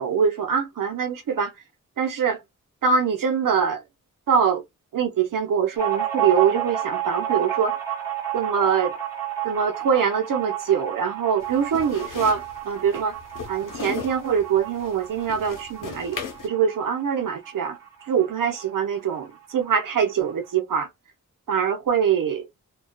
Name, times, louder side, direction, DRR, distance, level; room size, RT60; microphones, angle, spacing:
voice 1, 0.0-1.5 2.0-2.4 2.8-3.8 4.3-4.6 4.9-7.8 8.3-8.9 9.4-13.2 13.5-17.8 18.1-20.9 21.5-22.4, right 7 dB, 85° right, 0.7 m, -23 dB
sound 1, 5.8-18.9 19.2-19.3 19.6-20.3, right 11 dB, 5° right, 1.2 m, -31 dB
sound 2, 11.4-16.5, left 5 dB, 75° left, 0.8 m, -37 dB
2.3 x 2.3 x 2.2 m
cardioid pair, 65°, 32 cm